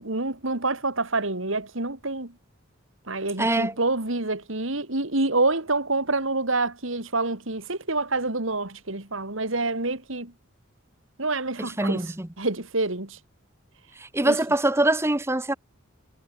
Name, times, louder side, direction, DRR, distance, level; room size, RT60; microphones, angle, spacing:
voice 1, 0.0-2.3 3.1-10.3 11.2-12.1 12.4-13.2 14.2-14.4, right 2 dB, 75° right, 3.3 m, -27 dB
voice 2, 3.4-3.7 11.6-12.3 14.0-15.5, right 1 dB, 10° right, 1.0 m, -24 dB
head